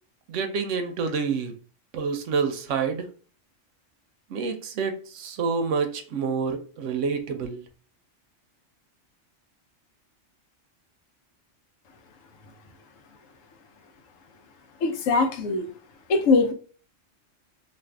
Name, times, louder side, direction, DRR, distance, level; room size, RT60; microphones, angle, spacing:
voice 1, 0.3-1.5 1.9-3.1 4.3-7.6, right 5 dB, 75° right, 0.9 m, -28 dB
voice 2, 14.8-15.7 16.1-16.5, left 3 dB, 85° left, 1.0 m, -21 dB
2.5 x 2.5 x 3.3 m
omnidirectional pair, 1.3 m